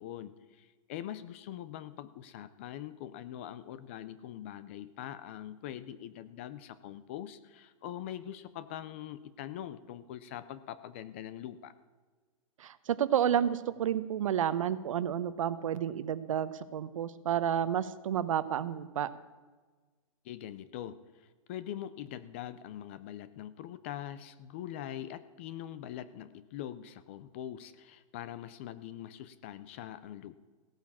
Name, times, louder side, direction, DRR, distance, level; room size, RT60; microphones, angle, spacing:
voice 1, 0.0-11.7 20.2-30.4, left 11 dB, 20° left, 15 dB, 0.4 m, -43 dB
voice 2, 12.6-19.1, right 9 dB, 65° right, 15 dB, 0.9 m, -30 dB
16.0 x 8.9 x 7.2 m, 1.4 s
hypercardioid pair, 170°, 18 cm